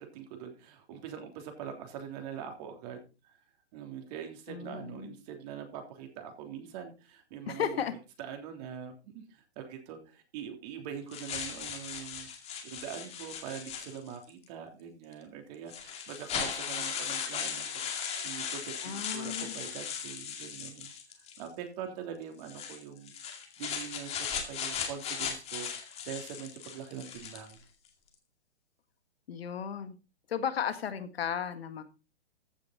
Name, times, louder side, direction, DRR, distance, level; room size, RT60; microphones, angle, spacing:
voice 1, 0.0-3.4 3.7-12.3 12.6-20.9 21.2-23.1 23.6-27.6, right 8 dB, 35° right, 4 dB, 3.4 m, -43 dB
voice 2, 4.5-5.1 7.5-7.9 18.8-19.6 29.3-30.0 30.3-31.8, left 8 dB, 65° left, 10 dB, 1.8 m, -34 dB
sound 1, 11.1-14.3 15.1-15.2 15.7-21.5 22.4-27.6, left 7 dB, 20° left, 2.3 m, -37 dB
14.5 x 6.8 x 4.1 m, 0.30 s
hypercardioid pair, 135°, 33 cm